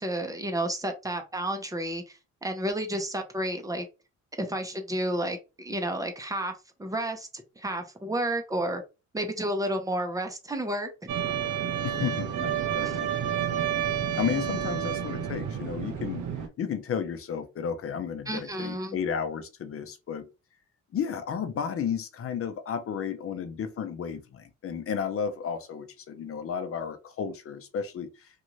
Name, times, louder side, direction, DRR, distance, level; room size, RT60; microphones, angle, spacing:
voice 1, 0.0-3.9 4.4-6.5 6.8-7.3 7.6-8.8 9.1-10.9 12.8-13.0 18.3-19.0, right 1 dB, 10° right, 0.8 m, -31 dB
sound 1, 11.1-16.5, right 9 dB, 75° right, 0.8 m, -30 dB
voice 2, 11.8-13.1 14.2-16.2 16.6-20.3 20.9-28.1, left 7 dB, 50° left, 0.7 m, -33 dB
2.6 x 2.4 x 3.1 m
cardioid pair, 90°, 30 cm